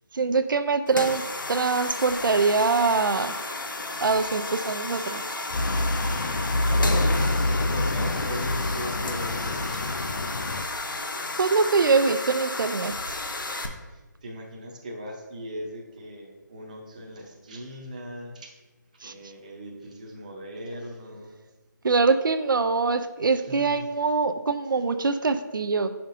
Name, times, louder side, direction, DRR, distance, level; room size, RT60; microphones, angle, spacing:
voice 1, 0.1-3.4 4.0-5.2 11.4-12.9 19.0-19.1 21.8-25.9, right 4 dB, 90° right, 10 dB, 0.5 m, -23 dB
sound 1, 0.9-13.7, left 2 dB, 85° left, 0.8 m, -32 dB
sound 2, 5.5-10.6, left 2 dB, 60° left, 0.4 m, -27 dB
voice 2, 5.9-7.2 7.5-9.9 11.2-11.3 13.9-18.5 19.0-21.3 23.5-23.9, equal, 20° right, -1 dB, 0.7 m, -40 dB
7.3 x 5.7 x 2.6 m, 1.2 s
hypercardioid pair, 175°, 11 cm